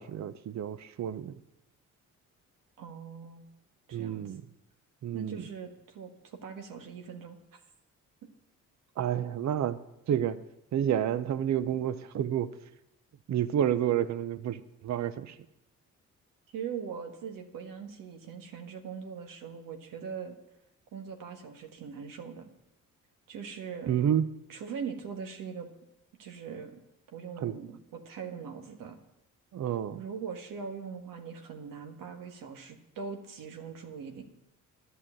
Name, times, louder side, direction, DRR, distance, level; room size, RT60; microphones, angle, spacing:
voice 1, 0.0-1.3 3.9-4.4 5.0-5.5 9.0-9.8 10.1-10.4 10.7-12.6 13.3-15.4 23.9-24.2 27.4-27.5 29.5-30.0, right 10 dB, 55° right, 15 dB, 0.7 m, -30 dB
voice 2, 2.8-3.4 3.9-4.3 5.1-7.6 16.5-20.3 20.9-22.5 23.3-24.0 24.5-25.7 26.2-26.8 27.1-29.0 29.9-34.2, right 6 dB, 85° right, 5 dB, 1.6 m, -41 dB
11.0 x 6.5 x 8.9 m, 0.87 s
cardioid pair, 90°, 32 cm